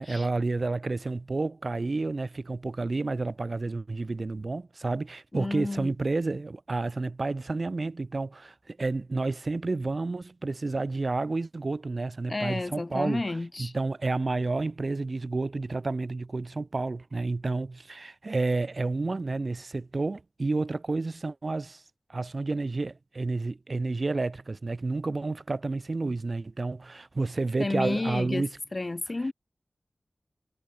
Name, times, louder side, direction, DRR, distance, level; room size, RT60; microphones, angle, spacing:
voice 1, 0.0-13.2 13.6-21.8 22.1-28.5, right 3 dB, 60° right, 0.4 m, -30 dB
voice 2, 5.3-5.9 12.3-13.7 27.6-28.5 28.7-29.3, left 2 dB, 45° left, 0.5 m, -31 dB
wide cardioid pair, 55°, 0 cm